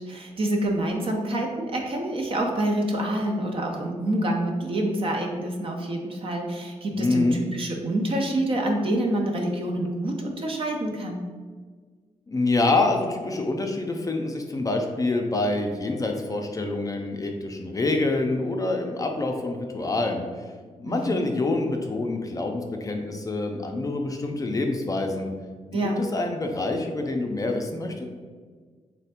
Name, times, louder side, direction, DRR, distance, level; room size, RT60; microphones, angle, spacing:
voice 1, 0.0-11.3 20.9-21.3 25.7-26.0, right 1 dB, 45° right, 2 dB, 0.6 m, -27 dB
voice 2, 6.9-7.4 12.3-20.3 20.8-25.3 25.7-28.1, left 2 dB, 30° left, 3 dB, 0.4 m, -26 dB
3.2 x 2.1 x 4.2 m, 1.5 s
cardioid pair, 80°, 12 cm